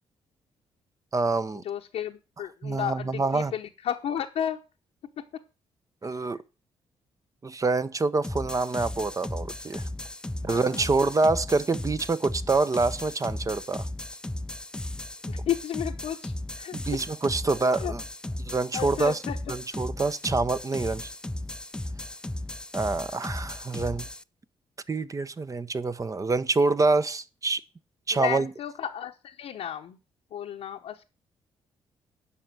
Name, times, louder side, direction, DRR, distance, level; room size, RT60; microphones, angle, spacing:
voice 1, 1.1-1.6 2.6-3.5 6.0-6.4 7.4-9.9 10.4-13.9 16.7-18.0 18.4-19.2 19.5-21.1 22.7-24.1 24.9-27.6 28.1-28.5, right 3 dB, 30° right, 0.9 m, -26 dB
voice 2, 1.6-4.6 5.2-5.4 6.0-6.2 10.5-10.9 15.3-16.7 17.8-17.9 18.7-19.6 28.1-30.0 30.3-31.0, left 9 dB, 75° left, 0.9 m, -33 dB
sound 1, 8.2-24.2, left 1 dB, 10° left, 0.5 m, -36 dB
10.0 x 5.6 x 7.7 m
supercardioid pair, 60°, 11 cm